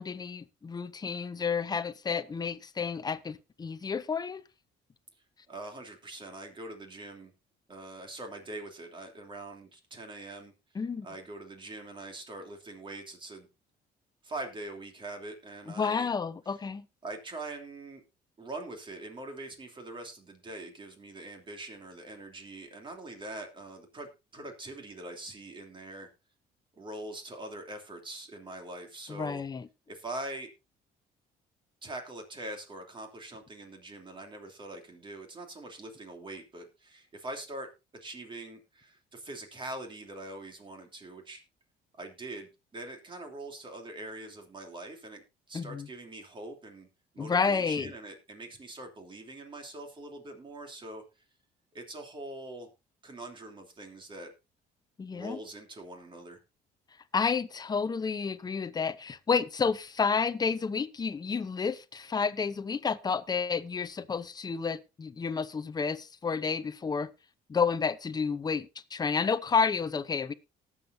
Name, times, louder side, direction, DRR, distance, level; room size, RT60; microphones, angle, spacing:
voice 1, 0.0-4.4 10.7-11.1 15.7-16.9 29.1-29.7 45.5-45.9 47.2-47.9 55.0-55.4 57.1-67.1 67.5-70.3, left 5 dB, 25° left, 0.8 m, -30 dB
voice 2, 5.5-7.3 7.7-10.5 11.0-13.5 14.2-16.1 17.0-18.0 18.4-26.1 26.8-29.4 29.9-30.5 31.8-41.4 41.9-46.9 47.1-51.0 51.7-52.7 53.0-54.3 55.1-56.4, right 2 dB, 30° right, 3.1 m, -43 dB
18.5 x 7.4 x 2.7 m
cardioid pair, 110°, 17 cm